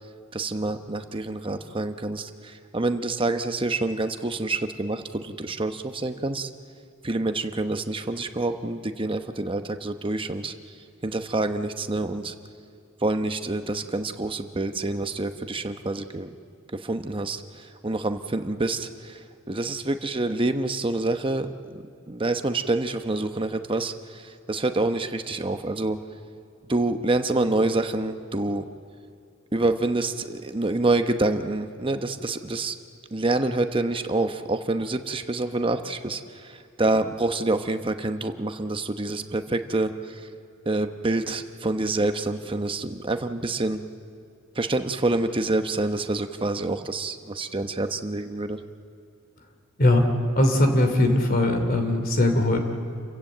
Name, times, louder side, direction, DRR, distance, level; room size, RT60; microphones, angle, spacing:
voice 1, 0.3-6.5 7.0-10.5 11.0-12.3 13.0-16.3 16.7-26.0 26.7-28.7 29.5-32.8 33.1-40.3 40.6-43.8 44.5-48.6, right 2 dB, 25° right, 7 dB, 0.9 m, -27 dB
voice 2, 49.8-50.1 50.3-52.6, left 1 dB, 45° left, 5 dB, 2.8 m, -20 dB
28.5 x 16.0 x 7.9 m, 2.5 s
head